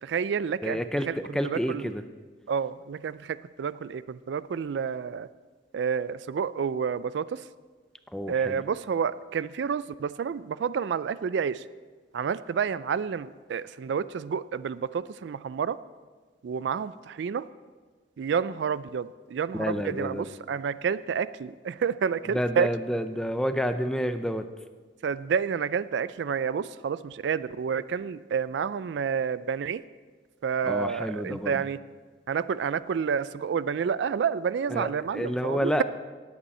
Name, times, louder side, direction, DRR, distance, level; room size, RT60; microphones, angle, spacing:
voice 1, 0.0-0.8 1.1-1.2 1.4-1.9 2.5-5.3 5.7-7.4 8.3-11.7 12.1-15.8 16.4-17.5 18.2-22.7 25.0-29.8 30.4-31.8 32.3-35.8, right 6 dB, 70° right, 16 dB, 0.3 m, -29 dB
voice 2, 0.6-2.0 8.1-8.6 19.6-20.3 22.3-24.5 30.6-31.6 34.7-35.8, equal, 5° left, 9 dB, 0.5 m, -29 dB
18.5 x 8.2 x 4.3 m, 1.4 s
head